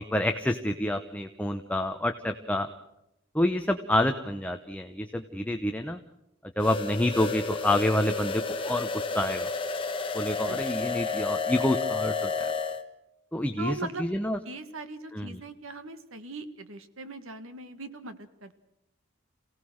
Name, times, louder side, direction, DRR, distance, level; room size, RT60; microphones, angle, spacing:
voice 1, 0.0-2.7 3.3-6.0 6.6-9.5 10.1-12.5 13.3-14.4 15.1-15.4, left 1 dB, 5° left, 6 dB, 0.8 m, -28 dB
sound 1, 6.6-12.8, left 4 dB, 25° left, 1.4 m, -31 dB
voice 2, 13.6-14.2 14.5-18.5, right 2 dB, 90° right, 10 dB, 1.9 m, -40 dB
28.0 x 17.5 x 6.4 m, 0.88 s
head